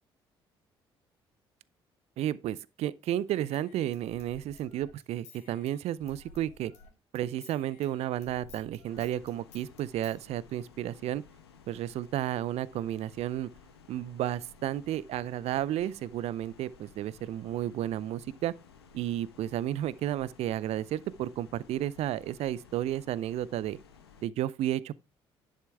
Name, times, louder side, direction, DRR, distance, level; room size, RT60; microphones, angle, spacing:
voice 1, 2.2-6.7 7.1-11.2 11.7-13.5 13.9-18.5 18.9-23.8 24.2-25.0, right 12 dB, 55° right, 0.4 m, -32 dB
Human voice / Scissors, 3.1-6.9 7.1-10.2, left 4 dB, 60° left, 2.7 m, -55 dB
sound 1, 8.9-24.2, left 5 dB, 85° left, 1.0 m, -56 dB
10.5 x 6.5 x 3.4 m
hypercardioid pair, 50°, 13 cm